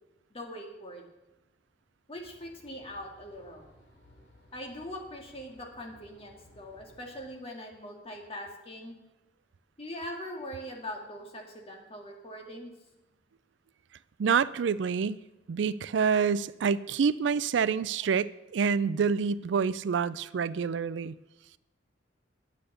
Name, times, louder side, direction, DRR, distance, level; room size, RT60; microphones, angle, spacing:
voice 1, 0.3-1.0 2.1-3.6 4.5-8.9 9.8-12.7 17.4-17.5, equal, 35° left, 1 dB, 2.0 m, -42 dB
Air Conditioner, 2.1-7.2, left 1 dB, 75° left, 3.8 m, -59 dB
voice 2, 14.2-15.2 15.5-21.1, right 6 dB, 85° right, 18 dB, 0.4 m, -27 dB
10.0 x 8.3 x 6.7 m, 1.0 s
head